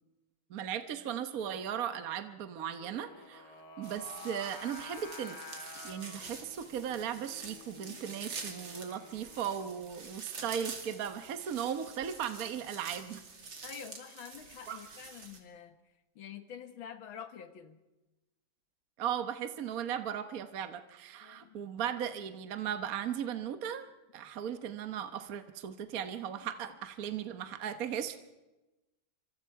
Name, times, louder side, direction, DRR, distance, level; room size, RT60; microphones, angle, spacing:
voice 1, 0.5-5.4 5.8-13.2 14.7-14.8 19.0-23.9 24.1-28.2, right 9 dB, 55° right, 9 dB, 1.4 m, -37 dB
Singing, 2.8-9.9, left 4 dB, 65° left, 2.5 m, -50 dB
sound 1, 3.8-15.4, right 4 dB, 75° right, 3.3 m, -47 dB
voice 2, 13.6-15.8 16.2-17.8 21.2-21.7 26.4-26.5, left 8 dB, 90° left, 9 dB, 2.2 m, -47 dB
27.5 x 25.0 x 4.7 m, 1.1 s
omnidirectional pair, 2.1 m